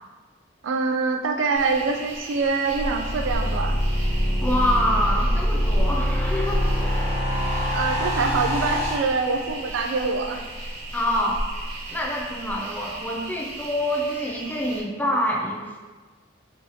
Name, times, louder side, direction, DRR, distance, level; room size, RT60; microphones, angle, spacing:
voice 1, 0.6-3.8 7.7-10.4, right 4 dB, 75° right, 5 dB, 0.3 m, -25 dB
sound 1, 1.5-14.8, equal, 35° right, 0.8 m, -33 dB
sound 2, 2.8-8.9, equal, 35° left, 1.2 m, -25 dB
voice 2, 4.4-6.9 10.9-11.4 11.9-15.8, equal, 10° left, -2 dB, 0.4 m, -26 dB
3.1 x 3.0 x 2.7 m, 1.3 s
head